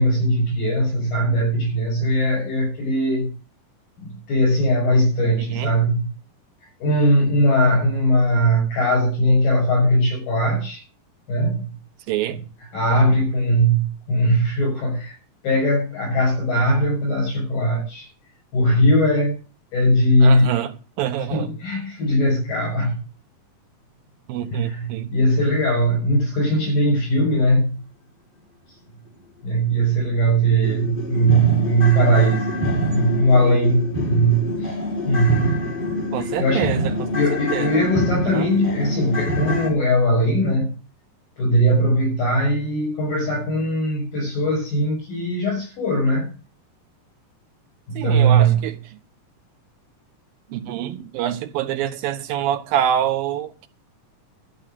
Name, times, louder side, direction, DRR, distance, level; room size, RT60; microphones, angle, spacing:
voice 1, 0.0-3.3 4.0-6.0 6.8-10.8 11.3-11.7 12.3-15.1 15.4-18.1 18.5-19.4 19.7-20.6 21.3-23.0 24.5-27.8 29.4-34.8 35.1-35.6 36.2-36.7 37.1-40.7 41.4-46.4 47.9-48.7, right 1 dB, 75° left, 8.6 m, -20 dB
voice 2, 12.1-12.4 20.2-20.7 21.0-21.5 24.3-25.1 36.1-37.1 37.5-37.7 38.3-38.5 48.0-48.8 50.5-53.7, right 10 dB, 85° right, 2.9 m, -25 dB
sound 1, 29.7-29.8 30.2-30.3 30.6-39.7, left 1 dB, 15° left, 3.4 m, -26 dB
13.0 x 7.1 x 7.4 m
omnidirectional pair, 4.1 m